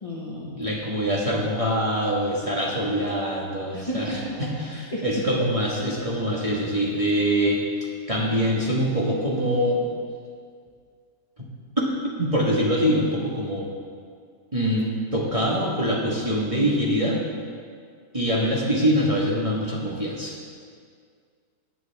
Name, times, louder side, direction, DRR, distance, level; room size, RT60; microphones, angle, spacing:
voice 1, 0.0-0.5 3.7-4.4 4.9-5.2, equal, 25° left, -5 dB, 1.4 m, -32 dB
voice 2, 0.5-7.6 8.1-9.8 12.2-13.7 14.5-17.2 18.1-20.3, equal, 25° right, -5 dB, 1.5 m, -24 dB
15.5 x 9.2 x 3.5 m, 2.1 s
omnidirectional pair, 1.6 m